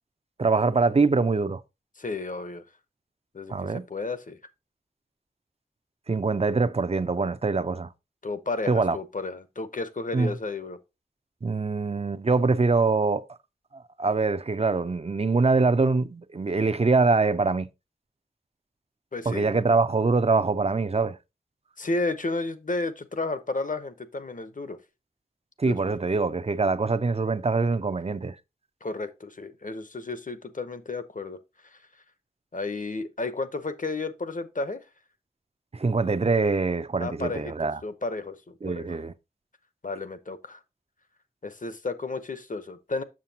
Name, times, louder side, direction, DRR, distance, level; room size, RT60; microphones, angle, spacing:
voice 1, 0.4-1.6 3.5-3.8 6.1-7.9 8.7-9.0 10.1-10.3 11.4-13.3 13.7-17.7 19.3-21.2 25.6-28.4 35.7-37.8 38.6-39.1, right 4 dB, 40° right, 0.5 m, -24 dB
voice 2, 2.0-2.6 3.3-4.4 8.2-10.8 19.1-19.5 21.8-24.8 25.7-25.8 28.8-31.4 31.7-31.8 32.5-34.8 37.0-39.0 39.8-40.6 41.4-43.0, left 3 dB, 55° left, 0.8 m, -32 dB
7.4 x 6.7 x 2.8 m
wide cardioid pair, 50°, 16 cm